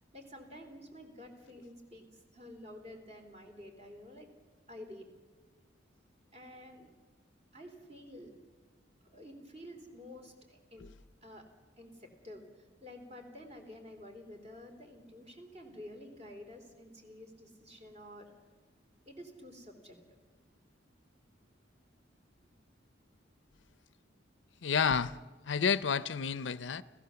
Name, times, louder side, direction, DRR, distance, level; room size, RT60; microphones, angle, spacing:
voice 1, 0.1-2.1 2.3-4.3 4.7-5.1 6.3-6.9 7.5-8.3 9.0-10.8 11.2-11.5 11.8-12.5 12.8-18.3 19.0-20.0, left 1 dB, 35° right, 3.4 m, -50 dB
voice 2, 24.6-25.2 25.5-26.8, left 6 dB, 65° left, 0.6 m, -30 dB
30.0 x 15.5 x 7.0 m
head